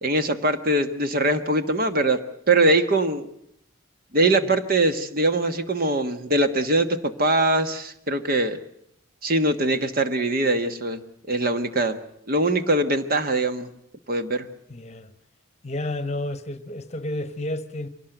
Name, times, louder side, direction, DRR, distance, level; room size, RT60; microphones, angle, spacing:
voice 1, 0.0-2.2 2.5-3.3 4.1-8.6 9.2-11.0 11.3-12.0 12.3-13.7 14.1-14.5, right 2 dB, 45° right, 1.3 m, -22 dB
voice 2, 14.7-15.1 15.6-17.9, left 1 dB, 30° left, 1.1 m, -31 dB
23.5 x 18.0 x 8.0 m
head